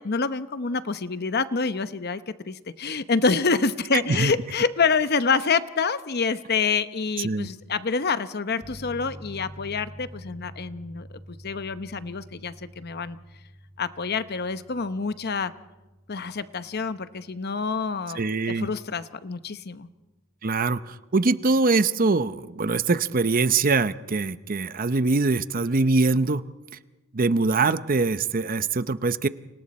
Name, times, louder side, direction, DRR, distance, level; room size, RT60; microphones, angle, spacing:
voice 1, 0.0-13.2 13.8-15.5 16.1-18.2 18.5-19.9, left 4 dB, 50° left, 12 dB, 0.9 m, -27 dB
sound 1, 8.6-19.1, equal, 15° right, 5.7 m, -47 dB
voice 2, 18.1-18.7 20.4-26.4 27.1-29.3, right 3 dB, 45° right, 13 dB, 0.7 m, -23 dB
30.0 x 26.0 x 4.3 m, 1.1 s
head